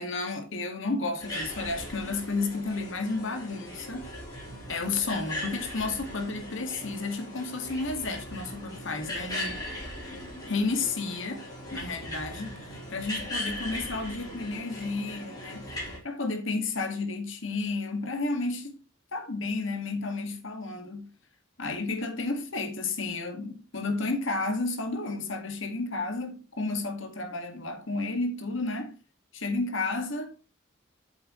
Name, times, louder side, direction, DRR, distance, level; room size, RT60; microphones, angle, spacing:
voice 1, 0.0-4.1 4.7-9.6 10.5-11.4 11.7-12.6 12.9-15.7 16.0-18.8 19.1-21.1 21.6-29.0 29.3-30.3, left 3 dB, 70° left, 2.1 m, -32 dB
sound 1, 1.2-16.0, left 1 dB, 20° left, 3.9 m, -39 dB
8.6 x 7.8 x 3.2 m
head